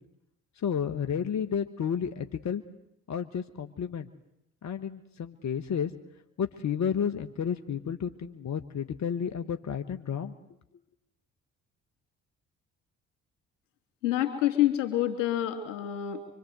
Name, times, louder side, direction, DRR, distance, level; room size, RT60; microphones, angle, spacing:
voice 1, 0.6-2.6 3.1-4.1 4.6-5.9 6.4-10.4, left 7 dB, 50° left, 8 dB, 1.3 m, -31 dB
voice 2, 14.0-16.3, left 12 dB, 80° left, 5 dB, 3.0 m, -27 dB
25.0 x 23.5 x 8.0 m, 0.81 s
hypercardioid pair, 45°, 37 cm